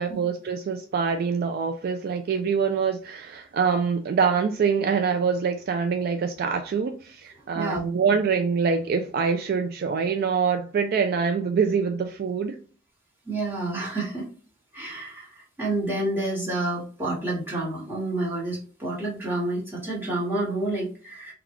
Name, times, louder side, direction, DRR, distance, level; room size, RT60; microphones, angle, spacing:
voice 1, 0.0-12.6, right 6 dB, 50° right, 0.3 m, -25 dB
voice 2, 13.2-14.3 14.7-21.3, right 2 dB, 10° right, 1.5 m, -29 dB
3.9 x 2.3 x 3.0 m
head